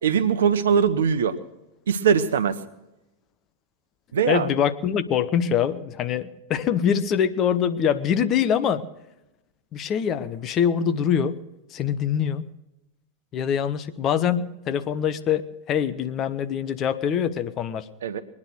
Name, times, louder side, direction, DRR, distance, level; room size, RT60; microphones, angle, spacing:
voice 1, 0.0-1.4 1.9-2.6 4.1-4.5 18.0-18.2, right 7 dB, 65° right, 12 dB, 0.9 m, -21 dB
voice 2, 4.3-8.8 9.7-11.4 11.7-12.5 13.3-17.9, left 8 dB, 30° left, 11 dB, 0.8 m, -24 dB
22.0 x 9.7 x 6.4 m, 0.94 s
figure-of-eight pair, 90°, 0 cm